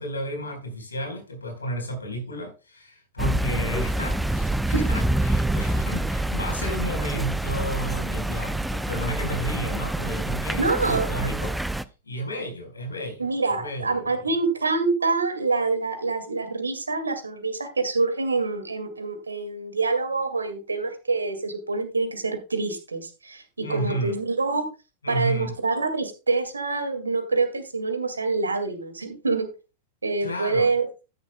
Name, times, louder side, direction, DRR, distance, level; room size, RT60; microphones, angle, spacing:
voice 1, 0.0-11.6 12.0-14.1 23.6-24.2 25.0-25.5 30.2-30.7, equal, 75° left, 4.3 m, -32 dB
sound 1, 3.2-11.8, right 1 dB, 5° right, 0.6 m, -26 dB
voice 2, 10.5-11.3 13.2-24.7 25.1-29.5 30.0-30.9, right 3 dB, 75° right, 2.1 m, -26 dB
13.0 x 10.5 x 2.2 m
figure-of-eight pair, 90°, 0 cm